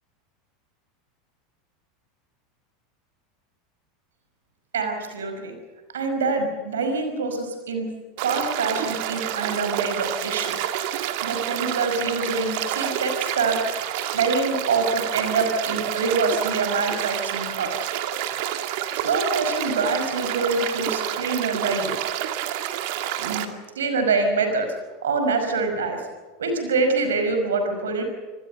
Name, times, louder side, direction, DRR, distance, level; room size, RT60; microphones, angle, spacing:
voice 1, 4.7-5.5 5.9-7.9 8.2-10.6 11.2-13.6 14.1-17.7 19.0-21.9 23.2-23.5 23.8-24.7 25.0-26.1 26.4-28.0, right 4 dB, 70° right, 6 dB, 5.4 m, -25 dB
sound 1, 8.2-23.4, right 11 dB, 55° right, 2.2 m, -28 dB
25.5 x 19.5 x 6.7 m, 1.3 s
figure-of-eight pair, 80°, 0 cm